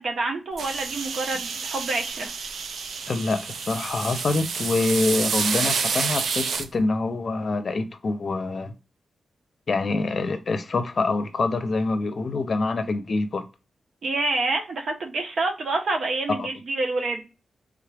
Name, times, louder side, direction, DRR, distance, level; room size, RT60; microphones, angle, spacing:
voice 1, 0.0-2.3 14.0-17.3, right 2 dB, 65° right, 0.9 m, -27 dB
sound 1, 0.6-6.7, right 5 dB, 85° right, 0.4 m, -29 dB
voice 2, 3.1-8.7 9.7-13.5 16.4-16.5, left 3 dB, 50° left, 0.6 m, -25 dB
3.5 x 2.4 x 3.3 m
wide cardioid pair, 110°, 0 cm